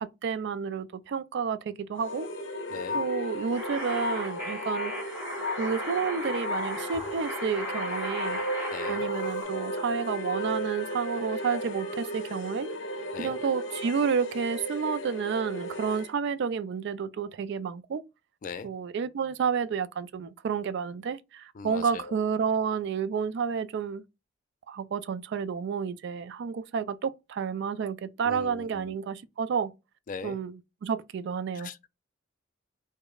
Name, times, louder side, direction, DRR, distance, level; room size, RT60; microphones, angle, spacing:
voice 1, 0.0-2.3 2.9-5.2 5.6-8.4 8.9-12.7 13.2-18.0 18.6-24.0 24.7-29.7 30.2-31.7, right 6 dB, 60° right, 0.3 m, -30 dB
sound 1, 1.9-16.1, left 1 dB, 65° left, 0.7 m, -34 dB
sound 2, 3.5-9.4, right 1 dB, 5° right, 1.5 m, -37 dB
voice 2, 8.7-9.0 13.1-13.3 18.4-18.7 21.5-22.1 28.2-29.0 30.1-30.4 31.5-31.9, left 5 dB, 40° left, 0.3 m, -40 dB
4.9 x 2.1 x 2.3 m
head